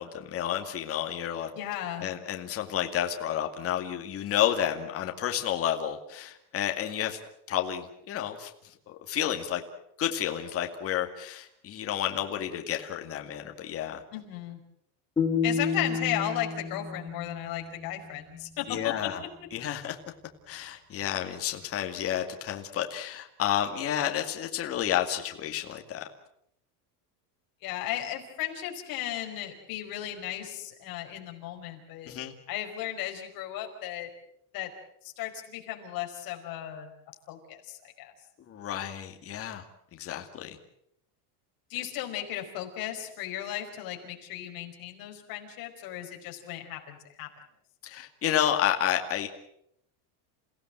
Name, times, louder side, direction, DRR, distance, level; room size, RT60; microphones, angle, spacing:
voice 1, 0.0-1.5 2.0-7.2 7.5-9.6 10.0-14.0 18.7-19.2 19.5-20.0 20.5-26.1 32.1-32.3 38.5-39.6 39.9-40.6 47.8-49.3, left 10 dB, 30° left, 4 dB, 2.2 m, -31 dB
voice 2, 1.6-2.1 14.1-14.6 15.4-19.1 27.6-32.1 32.5-34.1 34.5-34.7 35.0-36.9 37.3-38.1 41.7-47.3, left 12 dB, 45° left, 2 dB, 5.0 m, -35 dB
sound 1, 15.2-18.3, left 5 dB, 10° left, 3.0 m, -31 dB
29.0 x 16.5 x 7.7 m, 0.74 s
cardioid pair, 160°, 47 cm